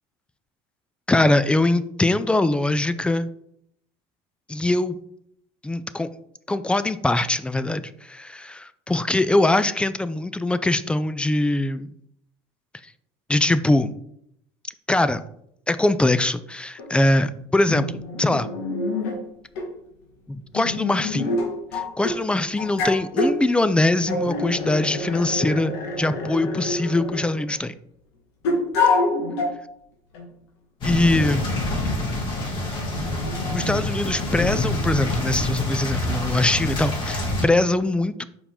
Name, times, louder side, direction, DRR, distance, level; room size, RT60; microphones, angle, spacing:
voice 1, 1.1-3.3 4.5-5.0 5.6-6.1 6.5-11.9 13.3-13.9 14.9-15.2 15.7-18.5 20.3-21.3 21.7-27.7 30.8-31.5 33.5-38.2, left 2 dB, 10° left, 13 dB, 0.3 m, -22 dB
sound 1, 16.8-16.9 17.7-19.2 19.6-19.7 20.5-22.2 22.6-23.4 24.1-27.5 28.4-29.6 30.1-30.3 31.1-31.3 32.8-33.8, left 2 dB, 90° left, 1.8 m, -26 dB
sound 2, 30.8-37.4, left 2 dB, 40° left, 2.2 m, -26 dB
5.6 x 4.6 x 3.6 m, 0.73 s
supercardioid pair, 115°, 13 cm